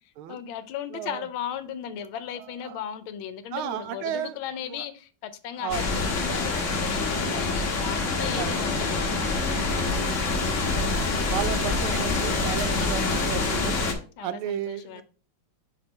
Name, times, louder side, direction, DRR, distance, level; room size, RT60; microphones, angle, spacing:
voice 1, 0.3-9.0 14.2-15.0, left 9 dB, 80° left, 1.5 m, -36 dB
voice 2, 0.9-1.3 2.3-2.8 3.5-4.4 4.7-4.8 5.6-6.0 8.3-8.6 10.7-10.9 11.3-13.8 14.2-15.0, right 10 dB, 85° right, 1.5 m, -33 dB
sound 1, 5.7-13.9, left 3 dB, 45° left, 1.2 m, -26 dB
5.5 x 4.4 x 4.2 m
omnidirectional pair, 2.3 m